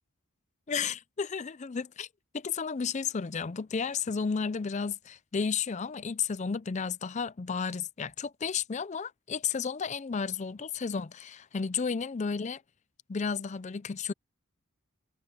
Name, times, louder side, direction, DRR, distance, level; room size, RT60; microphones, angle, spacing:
voice 1, 0.7-2.1 2.3-12.6 13.1-14.1, left 5 dB, 30° left, 0.4 m, -32 dB
head